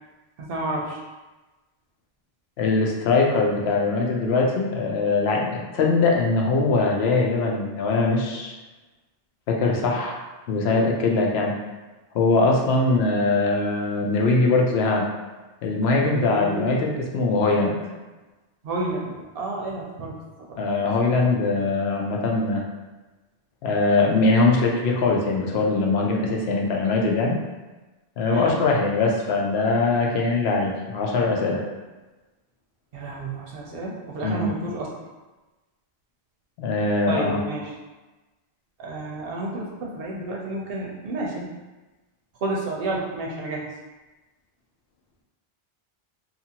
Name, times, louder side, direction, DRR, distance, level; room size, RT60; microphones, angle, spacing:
voice 1, 0.4-1.0 16.2-16.7 18.6-20.2 20.5-20.6 28.3-28.6 32.9-34.9 37.1-37.6 38.8-41.5 42.4-43.7, right 2 dB, 70° right, -2 dB, 0.8 m, -30 dB
voice 2, 2.6-8.5 9.5-10.2 10.5-11.5 12.1-15.1 15.6-17.8 20.6-22.6 23.6-27.4 28.2-31.6 34.2-34.5 36.6-37.4, left 3 dB, 80° left, -1 dB, 0.8 m, -22 dB
2.7 x 2.5 x 2.8 m, 1.2 s
omnidirectional pair, 1.1 m